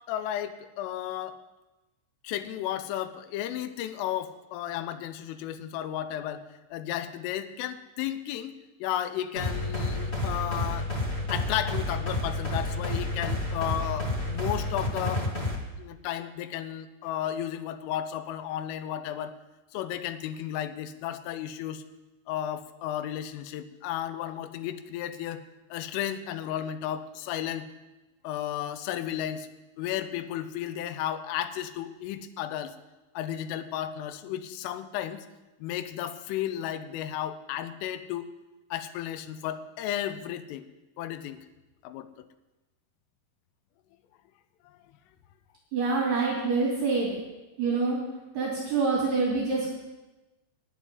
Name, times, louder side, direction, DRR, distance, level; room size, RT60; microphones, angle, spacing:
voice 1, 0.1-1.4 2.2-6.4 6.7-10.9 11.3-15.3 15.8-19.4 19.7-21.8 22.3-25.4 25.7-27.7 28.2-29.5 29.8-32.7 33.1-35.3 35.6-38.3 38.7-40.7 41.0-41.4 41.8-42.3 44.7-44.8, left 11 dB, 85° left, 10 dB, 3.3 m, -33 dB
sound 1, 9.3-15.5, left 2 dB, 50° left, 0.7 m, -30 dB
voice 2, 45.7-47.2 47.6-48.0 48.3-49.8, right 4 dB, 55° right, -5 dB, 4.7 m, -26 dB
12.0 x 8.2 x 9.8 m, 1.1 s
omnidirectional pair, 5.7 m